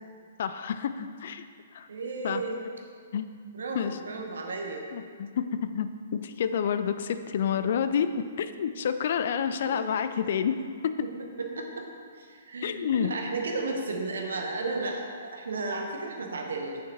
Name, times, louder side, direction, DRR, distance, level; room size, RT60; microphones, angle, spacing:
voice 1, 0.4-1.5 1.7-1.9 2.2-2.4 3.1-3.3 3.7-4.0 4.9-10.6 10.8-11.1 12.6-13.1, left 8 dB, 50° left, 11 dB, 0.4 m, -29 dB
voice 2, 1.9-2.6 3.5-4.8 7.5-7.7 9.6-10.1 11.0-11.1 11.4-11.8 12.1-16.8, right 3 dB, 65° right, 2 dB, 1.0 m, -34 dB
6.8 x 6.3 x 4.2 m, 2.1 s
figure-of-eight pair, 120°, 0 cm